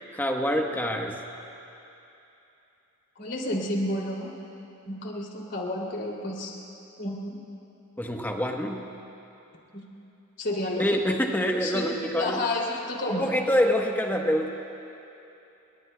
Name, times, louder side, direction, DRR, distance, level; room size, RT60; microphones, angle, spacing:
voice 1, 0.1-1.2 8.0-8.8 10.8-12.4 13.1-14.5, equal, 10° left, 2 dB, 1.1 m, -26 dB
voice 2, 3.2-4.3 4.9-6.5 7.0-7.4 9.7-9.8 10.4-11.2 11.6-13.3, left 1 dB, 55° left, -2 dB, 2.8 m, -31 dB
28.5 x 21.5 x 2.2 m, 2.9 s
head